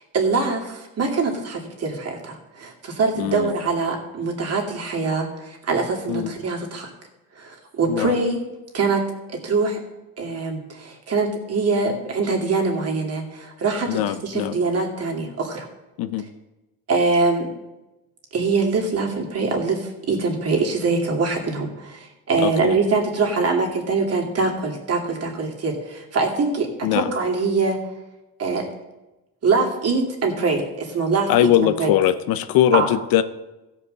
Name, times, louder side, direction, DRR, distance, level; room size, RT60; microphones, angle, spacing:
voice 1, 0.1-6.9 7.3-8.4 8.7-9.0 9.3-9.8 10.2-15.7 16.9-17.5 18.3-27.8 28.4-28.7 29.4-31.9 32.7-32.9, right 4 dB, 45° right, 2 dB, 2.5 m, -23 dB
voice 2, 3.2-3.5 6.1-6.3 7.9-8.1 13.9-14.6 16.0-16.2 22.4-22.8 26.8-27.1 31.3-33.2, left 11 dB, 80° left, 12 dB, 0.8 m, -21 dB
15.5 x 5.2 x 6.6 m, 1.0 s
cardioid pair, 125°, 35 cm